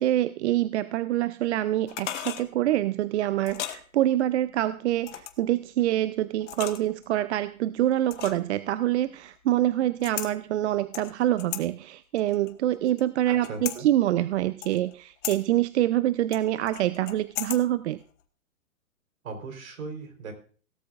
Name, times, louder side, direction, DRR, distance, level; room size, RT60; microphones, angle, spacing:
voice 1, 0.0-18.0, right 13 dB, 55° right, 15 dB, 0.6 m, -26 dB
sound 1, 1.9-2.5 3.4-3.8 5.0-5.5 6.4-7.0 8.1-8.5 10.0-10.3 10.9-11.6 12.2-13.0 13.4-13.8 14.6-14.9 15.2-15.4 16.3-17.6 17.9-18.0, left 12 dB, 55° left, 1.3 m, -36 dB
voice 2, 13.3-13.9 19.2-20.3, right 4 dB, 70° right, 5 dB, 4.0 m, -38 dB
17.5 x 12.5 x 2.5 m, 0.42 s
hypercardioid pair, 130°, 43 cm